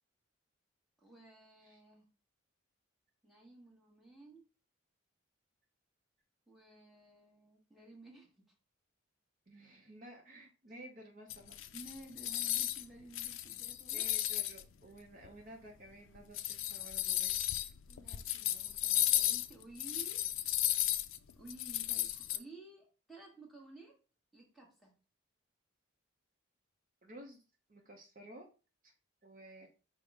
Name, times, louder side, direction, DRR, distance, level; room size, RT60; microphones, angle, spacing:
voice 1, 1.0-2.0 3.2-4.4 6.5-8.4 11.7-14.1 17.9-20.3 21.4-24.0 24.3-24.9, right 2 dB, ahead, -3 dB, 1.2 m, -54 dB
voice 2, 9.5-11.6 13.9-17.4 27.0-27.4 27.7-28.4 28.8-28.9 29.2-29.7, right 1 dB, 40° right, 1 dB, 0.7 m, -53 dB
sound 1, 11.3-12.8 13.1-14.6 15.2-15.3 16.2-22.4, left 14 dB, 70° left, 0.4 m, -34 dB
5.3 x 2.1 x 4.7 m, 0.34 s
head